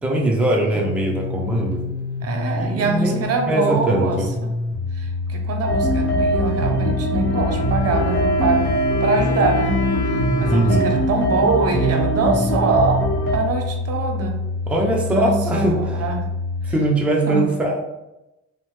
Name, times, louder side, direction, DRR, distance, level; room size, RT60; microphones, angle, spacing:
voice 1, 0.0-1.8 2.5-4.3 10.5-11.0 14.7-15.8 16.7-17.8, right 1 dB, 5° right, -2 dB, 0.5 m, -21 dB
sound 1, 0.7-16.7, left 3 dB, 30° right, 1.0 m, -27 dB
voice 2, 2.2-4.5 4.9-8.6 9.0-9.8 10.1-13.0 13.3-14.4 15.1-16.3 17.3-17.5, right 3 dB, 55° right, 4 dB, 0.6 m, -23 dB
sound 2, 5.7-13.4, right 1 dB, 45° left, 0.9 m, -22 dB
Wind instrument woodwind instrument, 7.1-12.6, left 1 dB, 65° left, 0.5 m, -31 dB
2.9 x 2.1 x 3.2 m, 0.94 s
cardioid pair, 90°, 30 cm